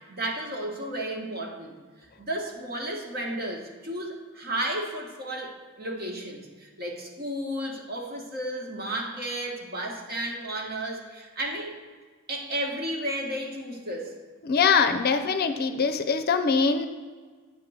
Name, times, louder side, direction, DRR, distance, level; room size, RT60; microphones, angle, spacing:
voice 1, 0.1-1.7 2.2-11.8 12.3-14.1, right 1 dB, 50° right, 0 dB, 1.4 m, -33 dB
voice 2, 14.4-16.9, left 5 dB, 50° left, 9 dB, 0.5 m, -23 dB
9.2 x 3.8 x 6.3 m, 1.5 s
head